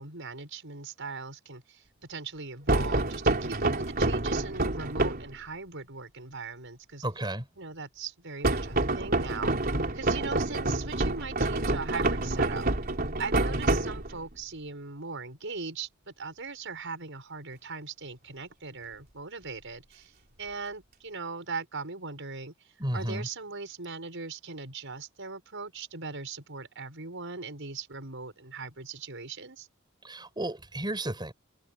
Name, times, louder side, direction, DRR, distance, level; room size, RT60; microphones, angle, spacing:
voice 1, 0.0-1.8 2.1-7.0 7.6-12.7 13.2-20.1 20.4-22.5 22.9-29.7, right 4 dB, 65° right, 7.1 m, -39 dB
sound 1, 2.7-5.3 8.4-14.3, right 2 dB, 45° right, 3.6 m, -27 dB
voice 2, 7.0-7.5 22.8-23.3 30.0-31.3, right 1 dB, 20° right, 6.4 m, -33 dB
open air
head